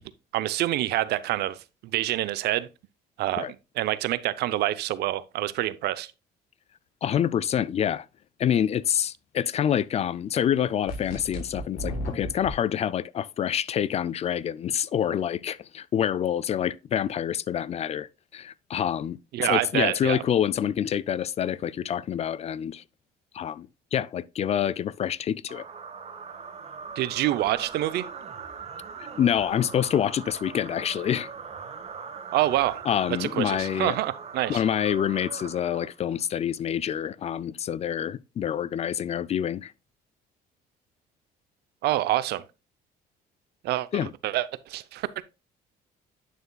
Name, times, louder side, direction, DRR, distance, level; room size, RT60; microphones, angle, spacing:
voice 1, 0.3-1.6 1.8-2.7 3.2-3.5 3.8-6.1 19.3-20.2 27.0-28.1 32.3-32.9 33.2-34.6 41.8-42.4 43.6-45.2, right 15 dB, 75° right, 0.6 m, -26 dB
voice 2, 7.0-8.1 8.4-22.8 23.3-25.7 29.2-31.3 32.9-34.0 34.5-39.7 43.9-44.1, left 9 dB, 40° left, 0.4 m, -27 dB
sound 1, 10.9-12.5, equal, 60° left, 4.1 m, -34 dB
sound 2, 25.5-36.2, right 5 dB, 40° right, 1.4 m, -41 dB
9.3 x 6.6 x 2.3 m
cardioid pair, 110°, 17 cm